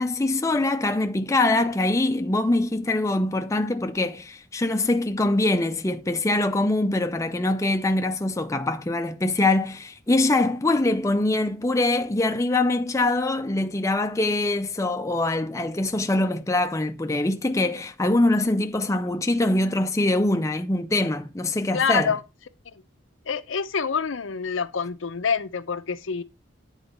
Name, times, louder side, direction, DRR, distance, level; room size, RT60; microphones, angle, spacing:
voice 1, 0.0-22.1, left 2 dB, 15° left, 0.5 m, -23 dB
voice 2, 21.7-22.2 23.3-26.2, left 6 dB, 75° left, 0.7 m, -26 dB
8.7 x 4.0 x 5.3 m
head